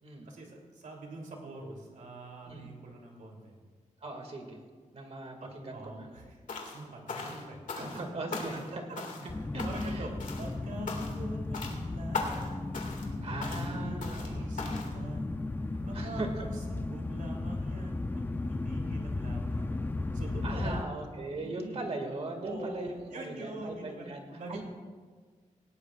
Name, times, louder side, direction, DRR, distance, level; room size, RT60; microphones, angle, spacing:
voice 1, 0.2-3.5 5.4-6.4 6.6-7.9 8.5-9.0 9.6-12.8 13.1-15.4 15.8-19.8 20.1-20.9 21.3-21.8 22.4-24.6, right 2 dB, 85° right, 0 dB, 3.0 m, -44 dB
voice 2, 4.0-4.6 4.9-6.2 7.1-7.5 7.7-8.6 9.2-10.1 13.2-14.8 15.9-16.5 20.4-24.2 24.5-24.6, right 2 dB, 50° right, 3 dB, 2.1 m, -39 dB
sound 1, 6.5-6.8 7.1-8.0 8.3-8.7 9.0-9.3 9.6-10.0 10.2-10.5 10.9-11.3 11.5-11.8 12.1-12.5 12.7-13.1 13.4-13.7 14.0-14.3 14.6-14.9, left 4 dB, 80° left, 2.0 m, -38 dB
sound 2, 9.3-20.8, left 2 dB, 15° left, 0.5 m, -35 dB
18.5 x 17.5 x 2.4 m, 1.5 s
wide cardioid pair, 160°, 13 cm